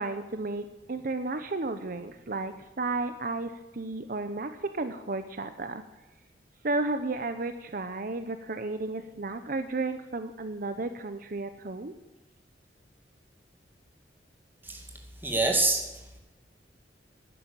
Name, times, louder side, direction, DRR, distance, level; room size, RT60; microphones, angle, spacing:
voice 1, 0.0-5.8 6.6-11.9, right 3 dB, 50° right, 9 dB, 0.8 m, -33 dB
voice 2, 14.6-16.2, right 2 dB, 10° right, 2 dB, 2.3 m, -28 dB
12.0 x 9.9 x 8.9 m, 1.1 s
head